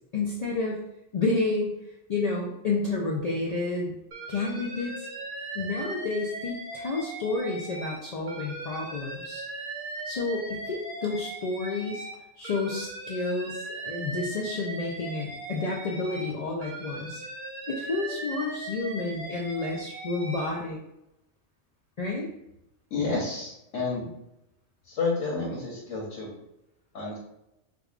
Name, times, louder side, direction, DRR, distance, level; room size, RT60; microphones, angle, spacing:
voice 1, 0.1-0.8 1.1-1.7 2.1-3.9 4.3-5.1 5.5-9.4 10.1-12.0 12.4-17.2 17.7-20.8 22.0-22.3, left 3 dB, 65° left, -3 dB, 0.4 m, -30 dB
Alarm, 4.1-8.0 8.3-12.1 12.4-16.3 16.6-20.5, right 2 dB, 50° right, 0.8 m, -39 dB
voice 2, 22.9-24.1 24.8-26.3 26.9-27.2, left 3 dB, 90° left, -5 dB, 1.2 m, -30 dB
4.7 x 2.2 x 2.4 m, 0.85 s
omnidirectional pair, 1.2 m